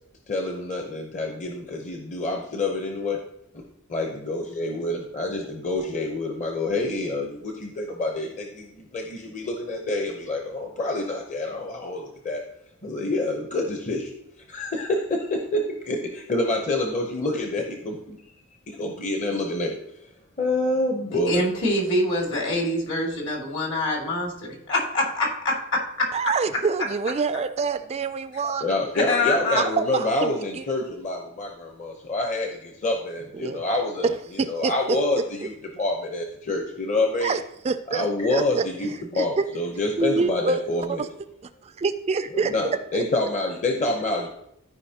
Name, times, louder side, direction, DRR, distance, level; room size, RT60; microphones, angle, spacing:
voice 1, 0.3-3.2 3.5-3.6 3.9-12.4 12.8-14.1 14.5-18.2 18.7-19.8 20.4-21.4 28.6-37.3 37.9-41.1 42.3-44.3, left 2 dB, 35° left, 2 dB, 0.8 m, -27 dB
voice 2, 21.1-24.3 24.7-25.8 28.9-29.7, left 1 dB, 60° left, -1 dB, 2.3 m, -25 dB
voice 3, 26.1-28.7 29.6-30.6 33.3-33.6 34.0-35.0 37.2-39.5 40.0-40.6 40.9-41.1 41.6-42.5 42.9-43.0, right 4 dB, 30° right, 11 dB, 0.3 m, -26 dB
13.5 x 5.0 x 2.8 m, 0.76 s
head